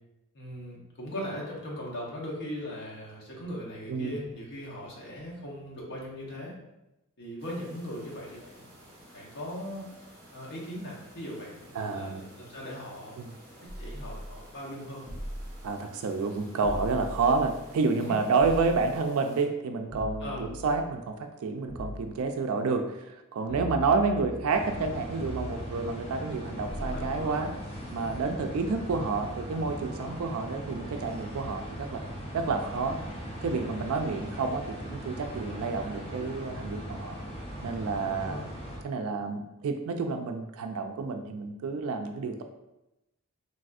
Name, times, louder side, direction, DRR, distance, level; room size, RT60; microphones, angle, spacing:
voice 1, 0.3-6.5 7.2-8.7 9.1-9.9 10.3-13.2 13.8-15.0 18.1-18.2 20.2-20.5 23.5-23.7 26.8-27.5 30.0-30.2 37.9-38.4, equal, 55° left, -4 dB, 0.8 m, -39 dB
sound 1, 7.4-19.4, right 1 dB, 45° right, 1.1 m, -53 dB
voice 2, 11.7-12.3 13.2-13.3 15.6-27.5 27.9-32.0 32.3-33.0 33.4-37.2 37.6-38.4 38.8-42.4, right 4 dB, 70° right, 6 dB, 0.3 m, -29 dB
sound 2, 13.7-14.4 15.1-15.7 16.6-17.7 18.4-19.0 19.9-21.0 21.7-22.3 23.5-24.6 25.2-25.8 26.7-27.3, equal, 20° right, 0.7 m, -39 dB
sound 3, 24.5-38.8, equal, 25° left, 0.6 m, -39 dB
3.3 x 2.5 x 2.4 m, 0.94 s
head